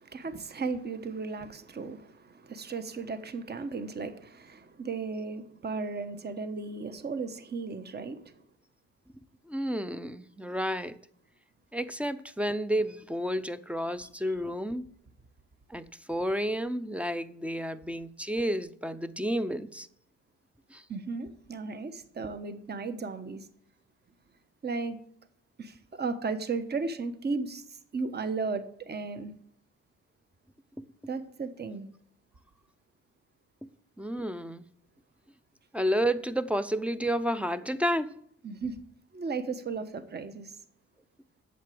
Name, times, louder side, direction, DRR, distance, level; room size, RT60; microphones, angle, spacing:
voice 1, 0.0-8.4 20.9-23.5 24.6-25.0 25.6-29.3 31.1-31.9 38.4-38.8 39.1-40.5, right 4 dB, 35° right, 1.1 m, -35 dB
voice 2, 9.5-11.0 11.7-14.9 15.7-19.9 20.7-20.8 30.8-30.9 34.0-34.7 35.7-38.1, equal, 5° right, 0.6 m, -31 dB
8.4 x 6.8 x 7.7 m
cardioid pair, 90°, 30 cm